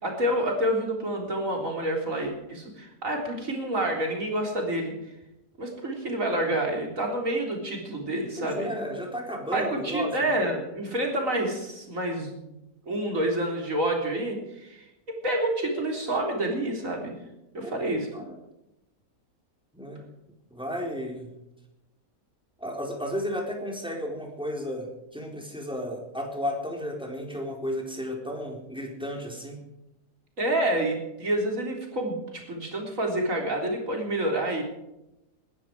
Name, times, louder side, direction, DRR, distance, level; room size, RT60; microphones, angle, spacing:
voice 1, 0.0-4.9 5.6-8.8 9.5-12.5 12.9-17.1 17.5-18.1 30.4-34.6, right 1 dB, 55° right, 1 dB, 4.0 m, -28 dB
voice 2, 8.4-10.3 17.6-18.3 19.7-20.1 20.5-21.3 22.6-29.6, equal, 5° right, 0 dB, 4.0 m, -33 dB
20.5 x 13.0 x 4.8 m, 0.90 s
omnidirectional pair, 1.6 m